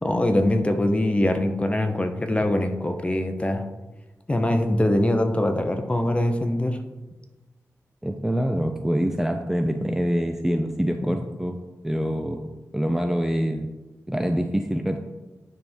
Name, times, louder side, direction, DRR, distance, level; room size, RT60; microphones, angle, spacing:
voice 1, 0.0-3.6 4.3-6.8 11.0-11.2, left 1 dB, 20° left, 6 dB, 0.8 m, -23 dB
voice 2, 8.0-11.6 11.8-13.7 14.1-15.0, equal, 5° right, 5 dB, 0.5 m, -25 dB
9.5 x 3.6 x 4.4 m, 1.1 s
wide cardioid pair, 80°, 6 cm